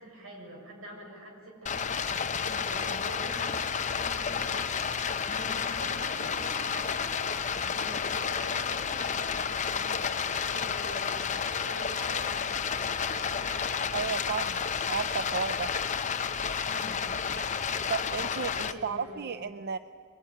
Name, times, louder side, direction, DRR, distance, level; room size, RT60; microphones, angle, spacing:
voice 1, 0.0-12.8 13.1-13.6 16.4-17.0 18.6-19.3, right 1 dB, 85° right, 0 dB, 6.7 m, -46 dB
Stream, 1.7-18.7, left 6 dB, 35° left, 0.8 m, -31 dB
voice 2, 13.9-15.7 17.9-19.8, right 5 dB, 50° right, 11 dB, 0.6 m, -33 dB
22.5 x 21.0 x 9.9 m, 2.1 s
head